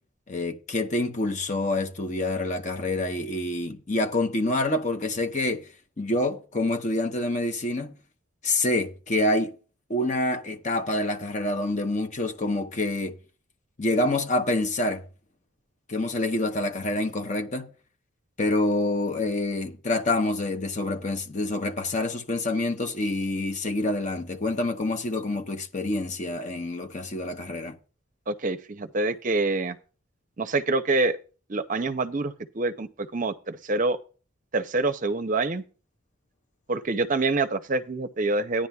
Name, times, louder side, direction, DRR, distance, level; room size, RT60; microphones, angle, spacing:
voice 1, 0.3-5.7 6.0-8.0 8.4-9.5 9.9-13.2 13.8-15.0 15.9-17.7 18.4-27.8, left 2 dB, 35° left, 0.9 m, -27 dB
voice 2, 28.3-29.8 30.4-31.2 31.5-34.0 34.5-35.6 36.7-38.7, right 3 dB, 40° right, 0.6 m, -26 dB
15.0 x 10.0 x 2.3 m
head